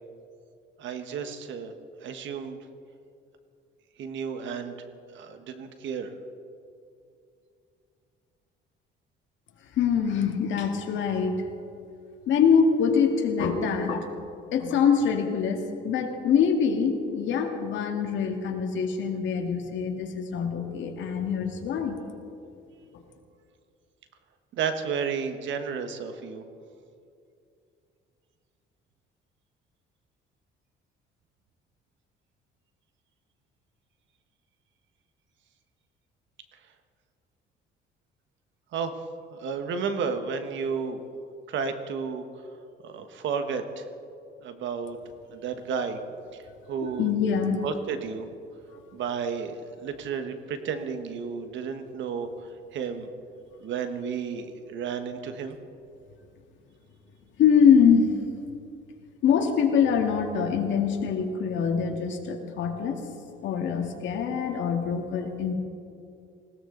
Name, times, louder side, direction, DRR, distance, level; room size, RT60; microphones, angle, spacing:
voice 1, 0.8-2.6 4.0-4.7 5.1-6.1 24.5-26.4 38.7-39.0 39.3-41.0 41.5-42.2 42.8-43.8 44.4-45.0 45.3-46.0 46.7-47.1 47.6-48.3 48.9-53.1 53.6-55.6, right 6 dB, 70° right, 8 dB, 1.4 m, -32 dB
voice 2, 9.7-11.4 12.3-14.1 14.5-22.0 47.0-47.6 57.4-58.1 59.2-63.0 63.4-65.5, left 6 dB, 70° left, 3 dB, 2.0 m, -24 dB
19.5 x 17.0 x 3.9 m, 2.5 s
cardioid pair, 115°, 20 cm